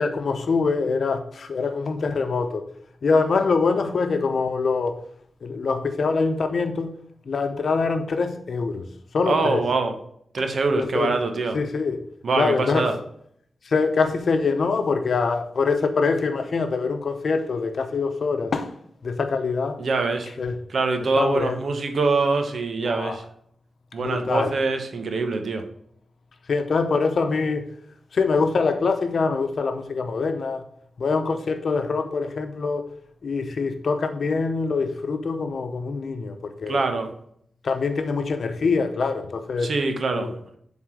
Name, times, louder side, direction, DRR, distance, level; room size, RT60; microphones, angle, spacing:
voice 1, 0.0-2.7 3.0-5.0 5.4-6.9 7.3-8.9 9.1-9.6 10.8-11.1 11.5-12.0 12.4-12.9 13.6-18.7 19.0-19.8 20.4-20.6 21.2-21.6 22.8-23.2 24.0-24.5 26.5-27.7 28.1-30.6 31.0-32.9 33.2-36.8 37.6-39.7 40.1-40.3, left 4 dB, 75° left, 0.8 m, -24 dB
voice 2, 9.2-9.9 10.3-11.6 12.2-12.9 19.8-20.3 20.7-23.2 23.9-25.6 36.7-37.1 39.6-40.6, right 3 dB, 70° right, 1.2 m, -24 dB
7.5 x 3.9 x 6.4 m
cardioid pair, 55°, 0 cm